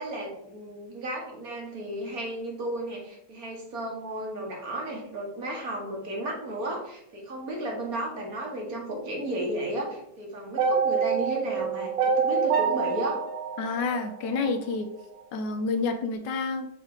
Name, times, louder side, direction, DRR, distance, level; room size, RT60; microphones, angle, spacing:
voice 1, 0.0-13.2, right 1 dB, 50° right, -1 dB, 1.9 m, -34 dB
sound 1, 10.6-14.8, right 6 dB, 75° right, 1.5 m, -26 dB
voice 2, 13.6-14.9 15.3-16.7, left 4 dB, 75° left, 6 dB, 1.3 m, -29 dB
5.8 x 3.6 x 4.9 m, 0.76 s
omnidirectional pair, 2.0 m